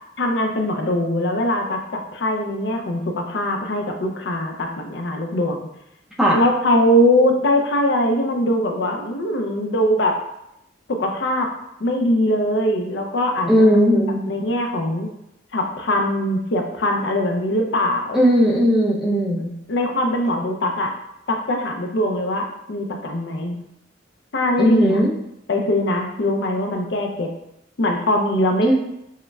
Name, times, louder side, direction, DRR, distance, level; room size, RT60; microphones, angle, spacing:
voice 1, 0.2-5.7 6.3-10.2 11.0-11.5 11.8-13.8 14.3-15.1 15.5-18.2 19.7-20.9 21.3-23.6 24.3-25.0 25.5-27.3 27.8-28.7, left 1 dB, 65° left, 3 dB, 0.5 m, -21 dB
voice 2, 13.5-14.2 18.1-19.5 24.6-25.1 28.6-28.7, equal, ahead, -4 dB, 0.5 m, -17 dB
6.4 x 2.1 x 2.3 m, 0.82 s
head